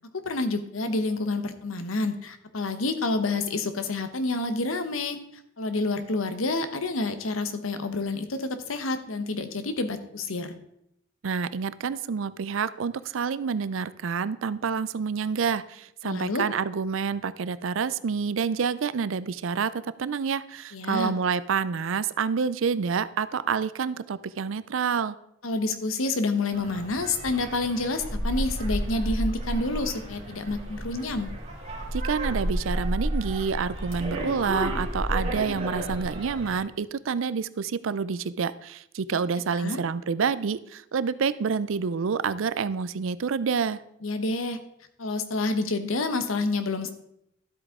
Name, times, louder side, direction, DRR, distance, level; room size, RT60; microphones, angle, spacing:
voice 1, 0.1-5.2 5.6-10.5 16.0-16.5 20.7-21.1 25.4-31.3 39.6-39.8 44.0-44.6 45.0-46.9, left 2 dB, 90° left, 9 dB, 1.0 m, -28 dB
voice 2, 11.2-19.7 20.0-25.2 31.9-43.8, right 6 dB, 75° right, 16 dB, 0.5 m, -28 dB
sound 1, 26.5-36.6, right 1 dB, 35° right, 2.9 m, -31 dB
12.5 x 8.1 x 3.7 m, 0.77 s
head